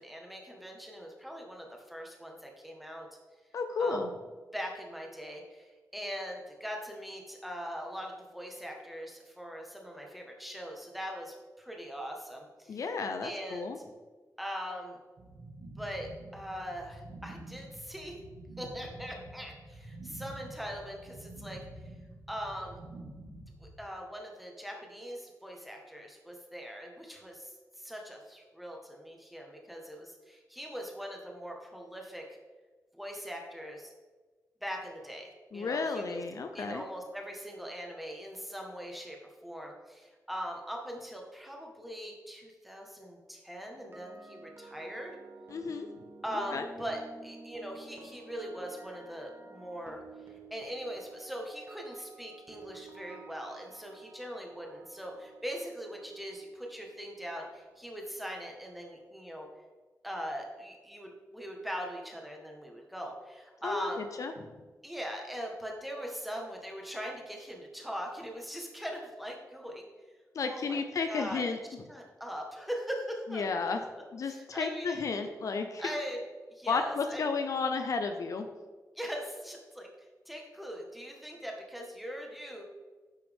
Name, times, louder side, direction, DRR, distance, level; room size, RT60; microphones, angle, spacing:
voice 1, 0.0-3.1 3.8-4.0 4.5-12.8 13.2-13.7 14.4-15.0 15.8-18.2 18.6-21.6 22.3-22.8 23.6-27.5 27.7-32.3 32.9-33.9 34.6-36.2 36.5-45.2 46.2-50.0 50.5-59.5 60.0-64.1 64.8-69.8 70.4-70.8 71.1-71.4 71.9-75.1 75.8-76.2 76.5-77.3 78.9-79.9 80.3-82.6, equal, ahead, 0 dB, 1.5 m, -41 dB
voice 2, 3.5-4.1 12.7-13.8 35.5-36.8 45.5-45.9 46.5-46.7 63.6-63.9 64.2-64.3 70.3-71.6 73.3-73.8 74.1-75.8 76.7-78.5, left 4 dB, 60° left, 6 dB, 0.7 m, -32 dB
sound 1, 15.2-23.7, right 2 dB, 60° right, 1.6 m, -48 dB
sound 2, 43.7-57.8 58.0-58.3, right 3 dB, 40° right, 1.6 m, -52 dB
10.0 x 6.1 x 3.6 m, 1.3 s
wide cardioid pair, 130°, 6 cm